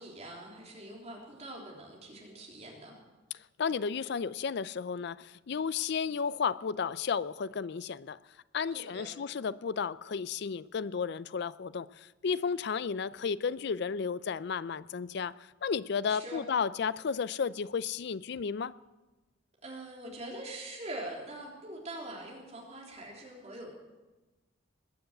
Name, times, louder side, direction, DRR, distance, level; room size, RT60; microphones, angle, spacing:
voice 1, 0.0-3.0 8.7-9.2 16.1-16.4 19.6-23.8, right 1 dB, 35° right, 3.3 m, -43 dB
voice 2, 3.3-8.2 8.5-18.7, left 6 dB, 55° left, 0.4 m, -33 dB
20.5 x 7.2 x 7.9 m
head